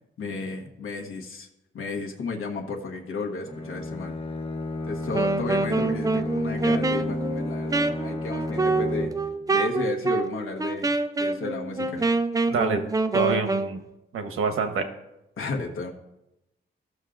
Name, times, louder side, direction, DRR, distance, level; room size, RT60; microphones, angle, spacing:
voice 1, 0.2-1.5 1.7-4.1 4.8-9.1 9.5-10.9 11.2-12.1 15.4-15.9, left 3 dB, 80° left, 0 dB, 1.3 m, -33 dB
Bowed string instrument, 3.4-9.4, left 1 dB, 25° left, 1.0 m, -32 dB
Wind instrument woodwind instrument, 5.0-13.8, right 3 dB, 15° right, 0.5 m, -26 dB
voice 2, 12.5-12.8 13.1-13.8 14.1-14.9, right 5 dB, 85° right, 5 dB, 1.2 m, -26 dB
15.5 x 6.3 x 2.6 m, 0.90 s
cardioid pair, 115°, 21 cm